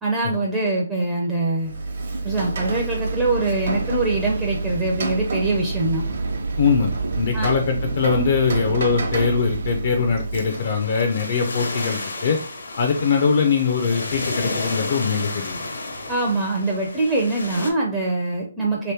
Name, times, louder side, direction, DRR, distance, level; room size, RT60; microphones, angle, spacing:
voice 1, 0.0-1.7 2.2-6.1 7.3-7.5 16.1-18.9, right 2 dB, 10° right, -4 dB, 0.5 m, -23 dB
Rain, 1.6-10.9, right 3 dB, 60° right, 0.9 m, -28 dB
sound 1, 3.0-9.8, right 4 dB, 75° right, 0.5 m, -33 dB
voice 2, 6.6-12.4 12.8-15.6, left 5 dB, 45° left, 2 dB, 0.5 m, -22 dB
sound 2, 10.5-17.7, left 2 dB, 75° left, 1.0 m, -32 dB
3.0 x 2.9 x 3.4 m, 0.42 s
hypercardioid pair, 170°, 0 cm